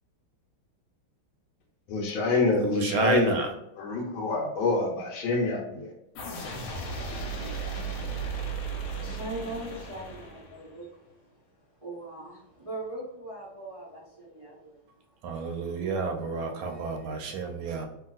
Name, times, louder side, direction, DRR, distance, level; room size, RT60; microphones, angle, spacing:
voice 1, 1.9-3.5 3.8-5.9, left 3 dB, 75° left, -3 dB, 1.4 m, -26 dB
voice 2, 2.6-3.5 15.2-17.9, right 4 dB, 80° right, 4 dB, 1.3 m, -30 dB
sound 1, 6.2-10.8, right 4 dB, 90° left, 1.5 m, -35 dB
voice 3, 6.5-14.9, right 2 dB, 40° right, -10 dB, 0.5 m, -42 dB
3.2 x 2.7 x 2.3 m, 0.86 s
omnidirectional pair, 2.3 m